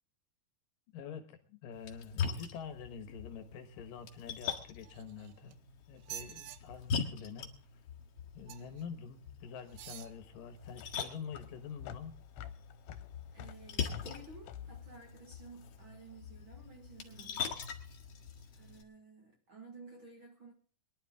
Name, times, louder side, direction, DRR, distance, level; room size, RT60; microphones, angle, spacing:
voice 1, 0.9-7.5 8.3-12.1, left 7 dB, 70° left, 2.9 m, -46 dB
Splash splatter, 1.7-18.8, left 6 dB, 50° left, 2.4 m, -42 dB
Squeaky Metal Fence, 4.8-5.5 6.0-6.6 8.5-8.8 9.7-10.1 10.8-10.9, right 11 dB, 75° right, 2.4 m, -47 dB
sound 1, 9.4-16.0, left 10 dB, 85° left, 2.7 m, -49 dB
voice 2, 13.3-17.6 18.5-20.5, right 3 dB, 45° right, 1.7 m, -54 dB
22.5 x 11.5 x 3.6 m
omnidirectional pair, 4.2 m